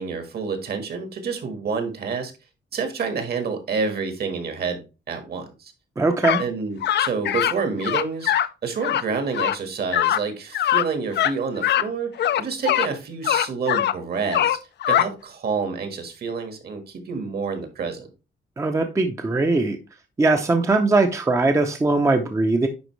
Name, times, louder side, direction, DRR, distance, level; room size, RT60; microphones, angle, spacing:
voice 1, 0.0-2.3 2.7-5.7 6.4-8.3 8.6-14.6 14.9-18.1, right 5 dB, 55° right, 1.6 m, -28 dB
voice 2, 6.0-6.4 18.6-19.8 20.2-22.7, right 3 dB, 15° right, 0.6 m, -20 dB
sound 1, 6.2-6.4 6.8-7.5 7.8-8.5 8.8-9.0 9.3-9.5 9.9-10.2 10.5-10.9 11.1-11.3 11.6-11.9 12.2-12.9 13.2-13.9 14.3-15.1, left 11 dB, 65° left, 0.4 m, -21 dB
10.5 x 4.3 x 3.1 m
wide cardioid pair, 175°, 19 cm